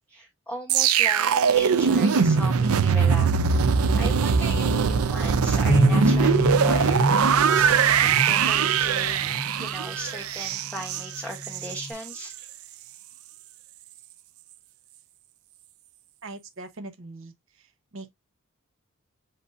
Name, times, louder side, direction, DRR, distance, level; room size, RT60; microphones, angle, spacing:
voice 1, 0.1-3.6 4.0-12.5, equal, 5° left, 0.9 m, -38 dB
sound 1, 0.7-11.8 12.1-12.3, right 6 dB, 90° right, 0.5 m, -21 dB
Bass guitar, 5.7-10.1 10.8-11.9, equal, 35° left, 0.9 m, -27 dB
voice 2, 16.2-17.3 17.9-18.1, right 2 dB, 65° right, 0.9 m, -40 dB
7.5 x 2.7 x 2.4 m
head